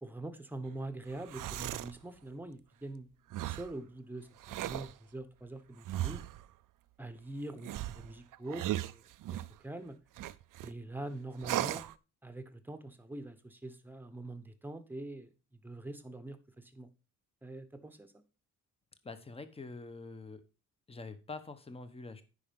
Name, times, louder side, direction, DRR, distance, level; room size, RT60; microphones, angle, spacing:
voice 1, 0.0-3.1 3.4-6.2 7.0-10.0 10.6-11.9 12.2-15.3 15.6-16.9 17.4-18.2, right 2 dB, 5° right, 9 dB, 1.1 m, -44 dB
sound 1, 1.1-2.0 3.3-3.7 4.4-4.9 5.9-6.4 7.6-9.6 10.2-10.7 11.4-11.9, right 14 dB, 75° right, 0.6 m, -37 dB
voice 2, 19.0-20.4 20.9-22.2, left 3 dB, 20° left, 11 dB, 1.1 m, -45 dB
9.9 x 5.1 x 5.3 m, 0.32 s
cardioid pair, 120°, 32 cm